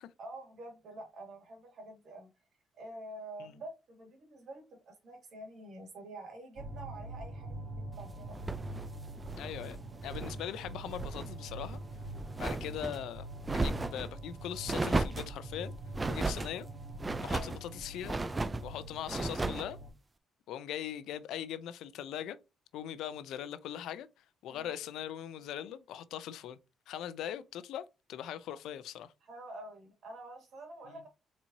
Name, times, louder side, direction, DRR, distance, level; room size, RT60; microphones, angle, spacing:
voice 1, 0.2-2.3 2.7-8.4 17.3-17.5 24.5-24.7 29.2-31.1, right 1 dB, 65° right, 2.4 m, -47 dB
sound 1, 6.6-19.9, right 2 dB, 40° right, 2.4 m, -44 dB
sound 2, 8.3-10.4 10.7-11.3 11.7-13.0 13.4-14.1 14.7-15.3 15.9-16.5 17.0-17.6 18.0-18.7 19.1-19.7, right 3 dB, 20° right, 0.5 m, -35 dB
voice 2, 9.4-11.8 12.4-15.7 16.0-16.7 17.2-18.2 18.6-19.8 20.5-22.4 22.7-24.1 24.4-26.6 26.9-29.1 30.9-31.0, left 10 dB, 85° left, 0.5 m, -40 dB
4.4 x 4.2 x 2.7 m
cardioid pair, 90°, 0 cm